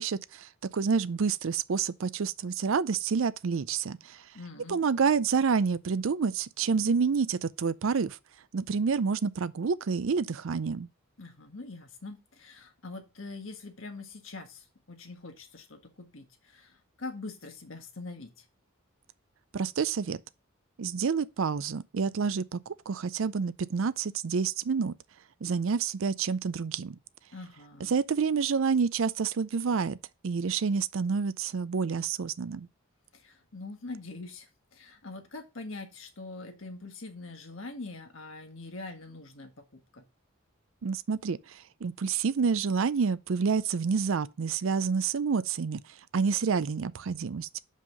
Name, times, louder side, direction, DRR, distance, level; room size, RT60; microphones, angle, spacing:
voice 1, 0.0-4.2 4.7-8.2 8.5-10.9 19.5-20.2 20.8-24.9 25.4-27.0 27.8-30.0 30.2-32.7 40.8-45.8 46.1-47.6, right 5 dB, 65° right, 0.5 m, -28 dB
voice 2, 4.3-4.8 11.2-18.3 27.3-27.9 33.1-40.0, left 3 dB, 65° left, 1.6 m, -43 dB
5.6 x 5.2 x 5.2 m
head